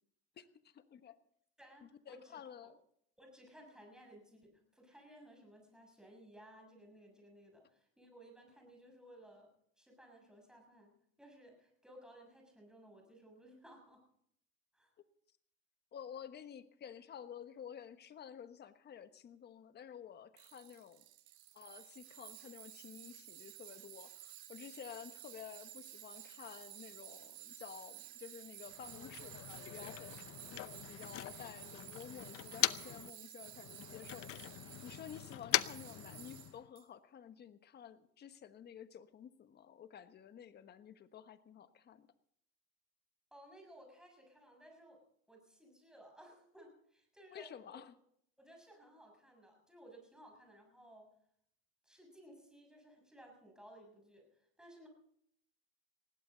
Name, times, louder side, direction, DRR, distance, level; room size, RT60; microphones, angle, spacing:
voice 1, 0.4-1.2 1.8-2.8 15.9-21.0 21.5-29.4 29.7-30.1 30.5-42.1 47.3-48.0, left 8 dB, 35° left, 11 dB, 1.2 m, -52 dB
voice 2, 1.6-2.4 3.2-9.5 9.8-14.0 14.7-14.9 43.3-45.0 45.3-47.8 48.4-51.1 51.8-54.9, right 1 dB, ahead, 1 dB, 6.9 m, -59 dB
Tools, 20.4-36.8, right 15 dB, 75° right, 2.6 m, -53 dB
Motor vehicle (road), 28.7-33.1 33.4-36.7, left 16 dB, 50° left, 0.7 m, -40 dB
20.0 x 16.5 x 3.9 m, 0.69 s
supercardioid pair, 120°, 30 cm